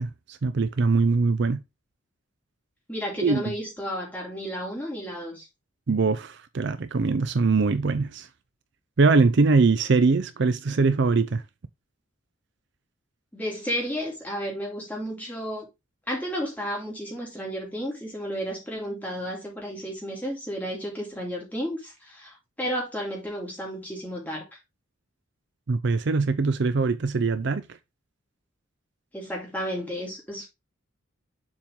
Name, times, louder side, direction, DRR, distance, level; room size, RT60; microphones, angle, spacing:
voice 1, 0.0-1.6 3.2-3.5 5.9-8.3 9.0-11.4 25.7-27.6, right 4 dB, 55° right, 0.5 m, -22 dB
voice 2, 2.9-5.5 13.3-15.7 16.1-24.5 29.1-30.5, equal, 10° left, 2.6 m, -32 dB
7.2 x 4.3 x 3.6 m
head